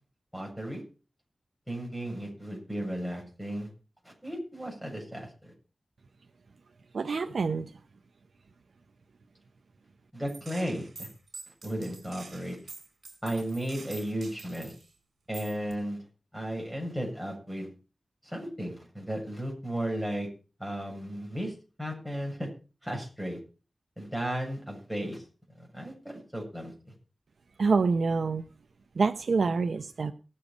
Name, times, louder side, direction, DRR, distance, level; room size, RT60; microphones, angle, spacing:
voice 1, 0.3-0.8 1.7-3.7 4.0-5.5 10.1-11.1 11.6-12.6 13.2-14.7 15.3-16.0 16.3-17.7 18.2-20.3 20.6-22.5 22.8-23.4 24.0-25.2 25.6-26.9, right 1 dB, 5° right, 0 dB, 7.6 m, -35 dB
voice 2, 6.9-7.7 27.6-28.4 29.0-30.1, right 4 dB, 85° right, 7 dB, 0.8 m, -26 dB
Gunshot gunfire, 10.3-14.9 15.3-15.7, right 3 dB, 65° right, 4.0 m, -47 dB
19.0 x 7.6 x 5.1 m, 0.35 s
wide cardioid pair, 80°, 0 cm